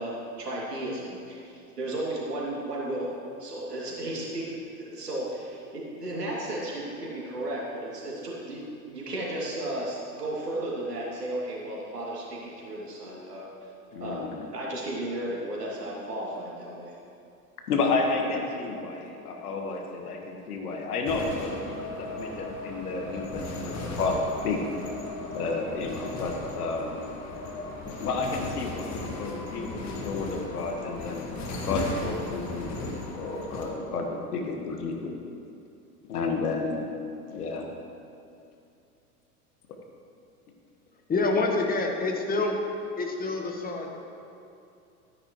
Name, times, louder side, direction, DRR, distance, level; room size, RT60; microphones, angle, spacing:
voice 1, 0.0-3.1 3.4-8.6 8.9-13.5 14.0-14.2 14.5-16.9, right 1 dB, 90° right, -5 dB, 2.8 m, -34 dB
voice 2, 13.9-14.4 17.7-24.6 25.3-27.1 28.0-31.3 31.6-32.9 33.1-35.1 36.1-36.9 37.3-37.7, left 3 dB, 75° left, 2 dB, 1.7 m, -31 dB
sound 1, 21.1-33.7, left 2 dB, 35° left, 2.0 m, -36 dB
voice 3, 41.1-42.5 43.0-44.0, left 3 dB, 20° left, 2 dB, 1.4 m, -27 dB
13.5 x 9.9 x 3.2 m, 2.6 s
hypercardioid pair, 95°, 46 cm